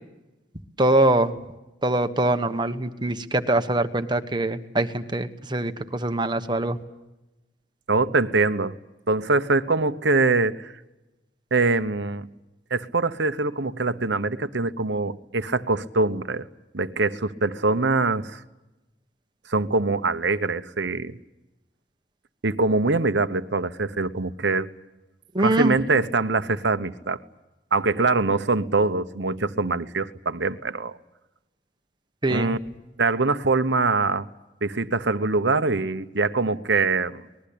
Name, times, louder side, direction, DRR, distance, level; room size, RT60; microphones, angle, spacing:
voice 1, 0.8-1.3 1.8-6.8 25.3-25.7 32.2-32.6, right 1 dB, 25° right, 8 dB, 1.2 m, -23 dB
voice 2, 7.9-8.8 9.1-10.7 11.5-12.3 12.7-16.5 16.7-18.4 19.5-21.2 22.4-24.7 25.4-27.2 27.7-31.0 32.3-32.6 33.0-34.3 34.6-37.2, right 3 dB, 70° right, 11 dB, 1.0 m, -23 dB
25.5 x 20.5 x 8.6 m, 0.99 s
head